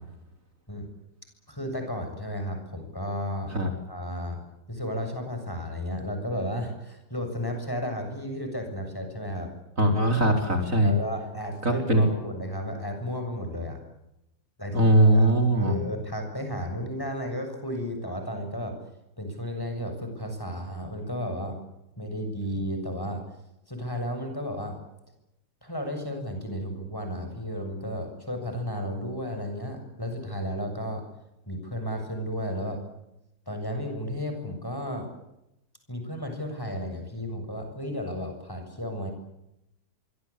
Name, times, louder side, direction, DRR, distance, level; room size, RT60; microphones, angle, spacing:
voice 1, 1.5-3.5 3.9-4.4 4.7-9.5 10.8-13.8 14.6-18.8 19.2-21.6 22.0-23.2 23.7-24.8 25.6-31.0 31.5-32.8 33.5-35.1 35.9-39.1, equal, 10° left, 5 dB, 7.2 m, -33 dB
voice 2, 9.8-10.9 11.6-12.1 14.7-15.7, right 1 dB, 50° right, 4 dB, 4.9 m, -20 dB
26.5 x 24.5 x 8.6 m, 0.86 s
omnidirectional pair, 1.8 m